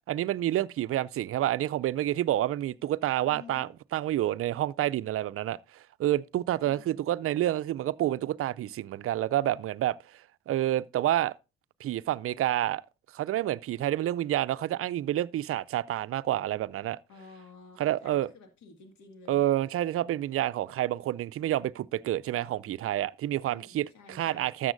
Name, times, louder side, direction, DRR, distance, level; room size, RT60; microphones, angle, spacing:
voice 1, 0.1-10.0 10.5-11.3 11.8-12.8 13.1-17.0 17.8-18.3 19.3-24.7, right 13 dB, 50° right, 0.4 m, -29 dB
voice 2, 3.3-3.7 6.6-7.0 17.1-19.5 23.4-24.5, left 4 dB, 70° left, 2.1 m, -51 dB
13.0 x 7.3 x 2.6 m
hypercardioid pair, 55°, 29 cm